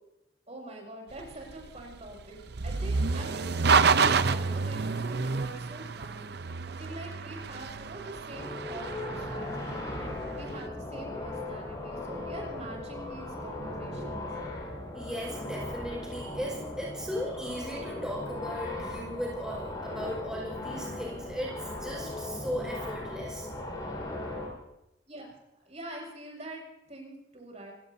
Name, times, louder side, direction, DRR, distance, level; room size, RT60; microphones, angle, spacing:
voice 1, 0.5-6.3 6.8-14.3 25.1-25.4 25.6-27.7, right 1 dB, 35° right, 0 dB, 6.4 m, -45 dB
sound 1, 1.1-10.4, right 5 dB, 60° right, 0.7 m, -29 dB
sound 2, 8.3-24.5, left 2 dB, 20° left, 6.8 m, -38 dB
voice 2, 14.9-23.5, equal, 5° right, -3 dB, 5.2 m, -37 dB
28.5 x 18.0 x 2.8 m, 0.92 s
head